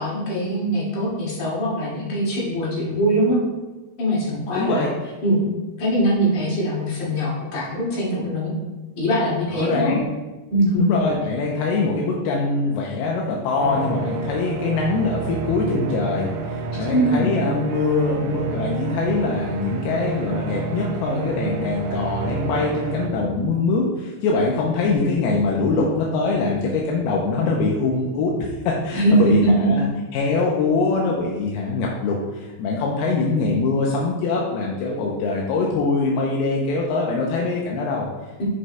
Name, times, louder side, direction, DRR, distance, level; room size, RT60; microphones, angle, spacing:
voice 1, 0.0-3.4 4.0-4.9 5.2-5.4 5.8-8.5 9.0-9.9 10.5-10.9 16.9-17.3 28.9-29.7 38.4-38.5, right 1 dB, 50° left, -8 dB, 3.4 m, -21 dB
voice 2, 4.5-5.1 9.5-10.1 10.8-38.4, left 3 dB, 80° left, -2 dB, 2.4 m, -23 dB
sound 1, 13.6-23.1, right 4 dB, 90° right, 2.8 m, -29 dB
9.4 x 6.4 x 2.3 m, 1.2 s
omnidirectional pair, 4.9 m